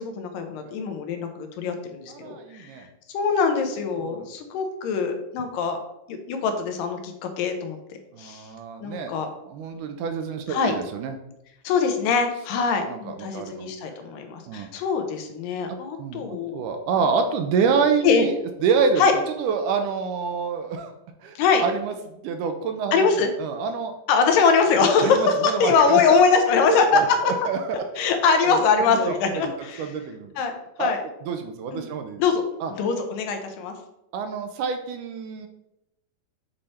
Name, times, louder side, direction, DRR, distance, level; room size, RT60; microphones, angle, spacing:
voice 1, 0.0-5.8 6.1-7.8 8.2-8.5 8.8-9.3 10.5-10.7 11.6-16.6 18.0-18.3 19.0-19.1 21.4-21.6 22.9-23.3 24.1-27.0 28.0-29.9 30.4-31.0 31.7-31.9 32.2-32.4 32.8-33.8, left 5 dB, 85° left, 6 dB, 2.5 m, -23 dB
voice 2, 2.1-2.9 4.0-4.3 8.1-9.1 9.5-11.1 12.9-13.7 14.5-14.7 16.0-18.4 18.6-19.0 19.4-20.9 21.2-23.1 23.4-23.9 25.0-26.2 26.7-28.1 28.4-28.6 28.9-29.4 29.8-30.3 30.8-30.9 31.3-32.2 32.6-32.7 34.1-35.5, right 5 dB, 80° right, 6 dB, 2.0 m, -27 dB
7.5 x 3.2 x 4.2 m, 0.87 s
omnidirectional pair, 3.9 m